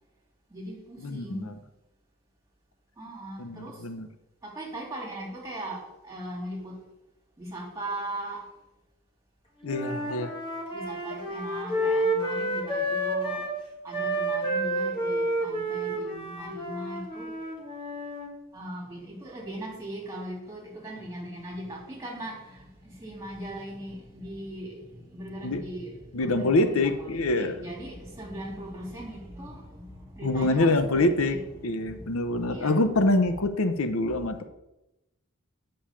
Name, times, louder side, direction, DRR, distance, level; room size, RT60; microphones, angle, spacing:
voice 1, 0.5-1.5 3.0-3.8 4.4-6.8 7.4-8.4 10.7-13.4 13.8-17.4 18.5-32.8 34.1-34.4, right 1 dB, 15° right, -2 dB, 3.0 m, -39 dB
voice 2, 1.0-1.4 3.4-4.1 9.6-10.3 25.4-25.6 26.1-27.6 30.2-31.4 31.6-34.4, left 2 dB, 75° left, 9 dB, 0.8 m, -25 dB
Wind instrument woodwind instrument, 9.6-13.5 13.9-18.3, right 1 dB, 25° left, 1.8 m, -30 dB
8.6 x 5.4 x 6.9 m, 0.93 s
head